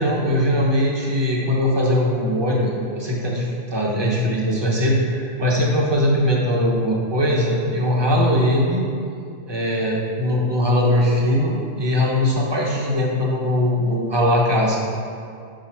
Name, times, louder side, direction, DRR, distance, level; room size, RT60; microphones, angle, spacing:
voice 1, 0.0-8.8 9.5-14.8, left 1 dB, 25° right, -3 dB, 1.1 m, -20 dB
5.6 x 5.1 x 5.9 m, 2.4 s
omnidirectional pair, 1.2 m